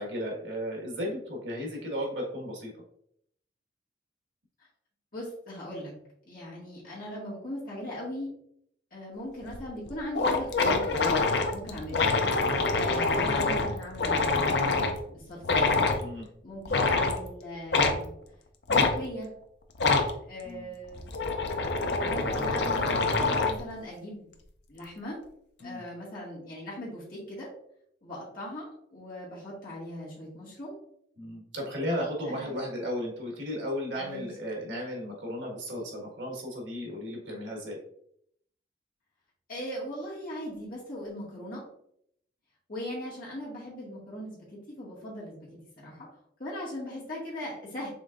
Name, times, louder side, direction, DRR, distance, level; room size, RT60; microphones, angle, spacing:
voice 1, 0.0-2.7 16.0-16.2 20.4-20.7 25.6-25.8 31.2-37.8, equal, 80° right, -1 dB, 1.6 m, -34 dB
voice 2, 5.1-5.9 6.3-8.3 8.9-12.0 12.7-14.6 15.1-15.6 16.4-18.1 18.7-19.3 20.0-21.1 22.0-24.3 24.7-25.2 25.6-27.5 28.0-30.8 32.3-32.6 34.0-34.3 39.5-41.6 42.7-45.5 45.8-46.1 46.4-47.9, equal, 50° left, -7 dB, 1.8 m, -39 dB
sound 1, 9.5-9.6 9.9-10.0 10.1-15.0 15.4-16.0 16.7-17.2 17.7-18.0 18.7-18.9 19.8-20.1 20.9-23.6, left 3 dB, 65° left, 0.6 m, -25 dB
5.3 x 3.7 x 2.5 m, 0.69 s
head